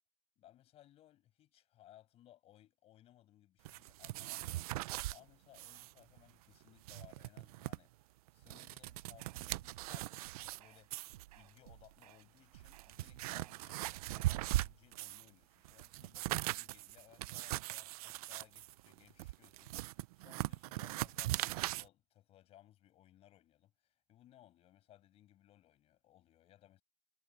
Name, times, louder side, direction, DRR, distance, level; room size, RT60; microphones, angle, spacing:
voice 1, 0.4-11.1 11.3-26.8, left 13 dB, 30° left, 6.2 m, -63 dB
sound 1, 3.6-5.2 5.5-5.9 6.2-6.3 6.7-7.8 8.3-10.6 10.9-11.2 12.0-12.1 12.6-15.3 15.6-21.9, right 18 dB, 70° right, 0.6 m, -40 dB
sound 2, 8.8-14.4, right 15 dB, 85° right, 5.4 m, -59 dB
supercardioid pair, 155°, 20 cm